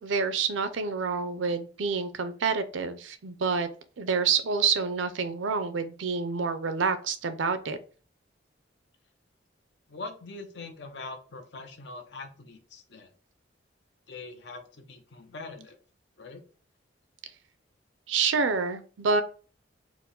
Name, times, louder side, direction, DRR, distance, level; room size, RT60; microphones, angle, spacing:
voice 1, 0.0-3.7 4.0-7.8 18.1-19.2, right 5 dB, 85° right, 11 dB, 0.5 m, -28 dB
voice 2, 9.9-13.1 14.1-15.8 16.2-16.4, left 3 dB, 65° left, 7 dB, 0.7 m, -42 dB
4.5 x 2.1 x 3.8 m, 0.38 s
head